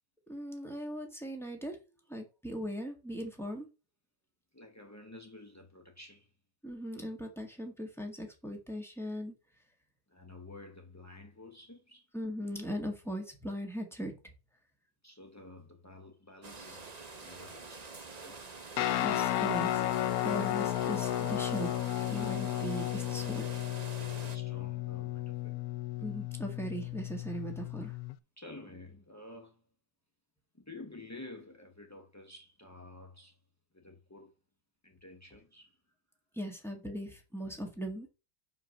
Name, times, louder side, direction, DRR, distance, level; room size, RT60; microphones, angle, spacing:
voice 1, 0.3-1.8 2.1-3.7 6.6-9.3 12.1-14.1 19.0-19.8 20.2-21.7 22.0-23.6 26.0-28.0 36.3-38.1, equal, ahead, 1.6 m, -39 dB
voice 2, 4.5-6.3 10.1-12.1 15.0-16.9 17.2-17.9 18.2-18.6 23.9-25.6 28.4-29.6 30.5-33.4 33.7-34.3 34.8-35.8, left 2 dB, 15° left, 0.5 m, -51 dB
sound 1, 16.4-24.4, right 4 dB, 30° right, 0.8 m, -47 dB
Guitar, 18.8-28.1, left 14 dB, 70° left, 0.9 m, -33 dB
6.0 x 4.8 x 6.3 m
omnidirectional pair, 2.0 m